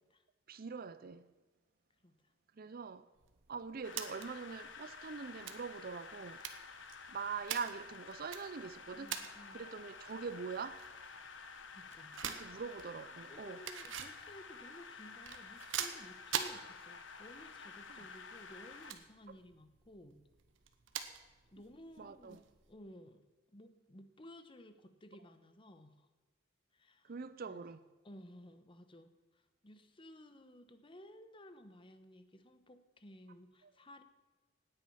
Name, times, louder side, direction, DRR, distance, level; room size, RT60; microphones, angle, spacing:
voice 1, 0.5-1.3 2.6-3.1 3.5-6.5 7.1-9.1 9.5-10.8 12.2-13.6 14.0-14.1 17.9-18.1 22.0-22.4 27.0-27.9 33.6-33.7, right 5 dB, 50° right, 0.5 m, -43 dB
sound 1, 3.2-22.7, right 8 dB, 85° right, 1.2 m, -47 dB
sound 2, 3.8-18.9, left 5 dB, 70° left, 1.2 m, -51 dB
voice 2, 8.9-9.7 11.7-12.2 13.3-20.2 21.5-23.2 23.5-26.1 26.7-27.1 27.5-27.6 28.0-34.0, equal, 25° left, 1.0 m, -56 dB
17.0 x 9.4 x 5.7 m
head